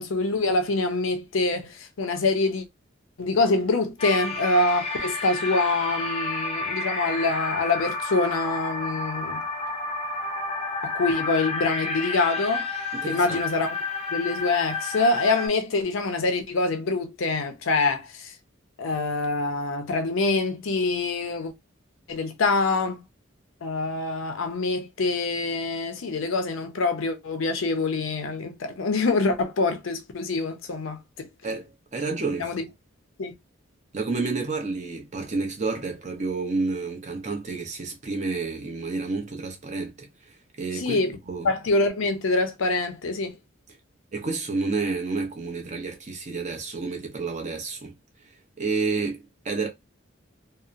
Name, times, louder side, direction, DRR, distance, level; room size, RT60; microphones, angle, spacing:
voice 1, 0.0-2.6 3.2-9.4 10.8-12.7 13.1-13.8 14.1-18.3 18.8-21.5 22.1-23.0 23.6-31.3 32.4-32.6 33.2-33.3 40.7-41.2 41.4-43.4, left 3 dB, 80° left, 0.6 m, -25 dB
sound 1, 4.0-15.5, left 3 dB, 30° left, 0.5 m, -30 dB
voice 2, 12.9-13.4 31.4-32.5 33.9-40.1 40.6-41.0 41.3-41.5 44.1-47.9 48.6-49.7, right 3 dB, 35° right, 0.7 m, -30 dB
2.7 x 2.0 x 2.4 m
head